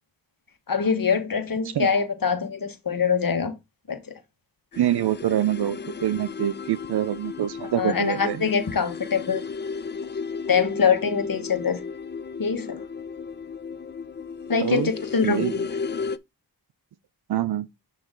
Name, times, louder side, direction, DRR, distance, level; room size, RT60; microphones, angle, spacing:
voice 1, 0.7-3.5 3.9-4.1 7.8-9.4 10.5-11.8 12.4-12.8 14.5-15.5, left 6 dB, 55° left, 1.5 m, -24 dB
sound 1, 4.7-16.2, left 5 dB, 30° left, 0.4 m, -34 dB
voice 2, 4.8-8.5 14.6-14.9 15.2-15.7 17.3-17.7, right 11 dB, 75° right, 0.5 m, -25 dB
8.9 x 3.1 x 3.7 m
cardioid pair, 45°, 40 cm